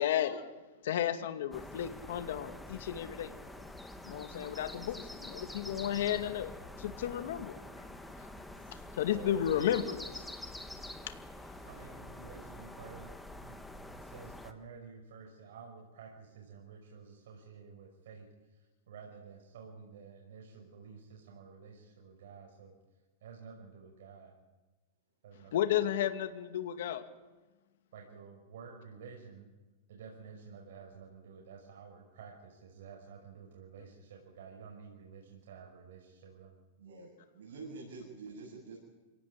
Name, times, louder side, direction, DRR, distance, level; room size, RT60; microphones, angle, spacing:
voice 1, 0.0-3.3 4.0-6.5 6.8-7.5 8.2-8.3 8.9-10.3 10.6-10.7 11.0-11.2 25.5-27.1, left 10 dB, 70° left, 7 dB, 2.4 m, -33 dB
sound 1, 1.5-14.5, left 1 dB, 5° left, 1.5 m, -47 dB
voice 2, 9.1-9.5 11.6-22.7 23.2-24.4 25.2-25.5 27.9-29.5 29.9-36.5, right 6 dB, 75° right, 0 dB, 5.8 m, -51 dB
voice 3, 36.8-38.8, right 3 dB, 90° right, -3 dB, 7.6 m, -47 dB
26.5 x 17.5 x 8.8 m, 1.2 s
supercardioid pair, 155°, 0 cm